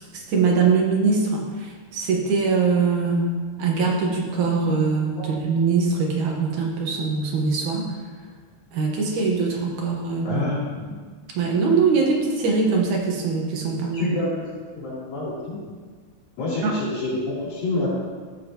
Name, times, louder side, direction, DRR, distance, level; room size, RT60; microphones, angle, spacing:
voice 1, 0.0-3.3 3.6-7.8 8.7-10.4 11.4-14.1 16.6-16.8, right 4 dB, 70° right, -1 dB, 2.5 m, -22 dB
voice 2, 10.2-10.6 13.9-14.4 14.7-15.6 16.4-17.9, left 2 dB, 80° left, -8 dB, 5.1 m, -27 dB
14.5 x 7.3 x 3.0 m, 1.5 s
omnidirectional pair, 3.9 m